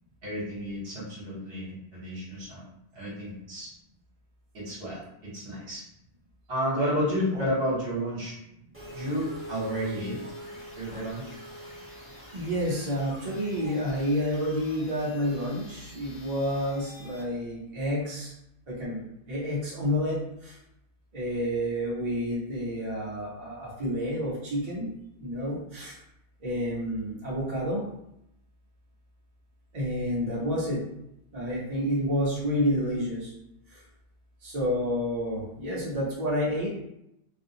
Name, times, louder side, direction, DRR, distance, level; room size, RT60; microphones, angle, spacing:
voice 1, 0.2-2.6 2.9-3.7 4.5-5.8 6.5-8.3 8.9-10.2 10.7-11.4, equal, 60° right, -6 dB, 1.2 m, -31 dB
sound 1, 8.7-17.2, equal, 15° right, 0.9 m, -45 dB
voice 2, 12.3-18.3 18.7-20.6 21.1-24.9 25.2-26.0 26.4-27.8 29.7-30.8 31.3-33.3 34.4-36.7, equal, 40° right, -7 dB, 0.8 m, -29 dB
2.5 x 2.2 x 2.7 m, 0.80 s
omnidirectional pair, 1.1 m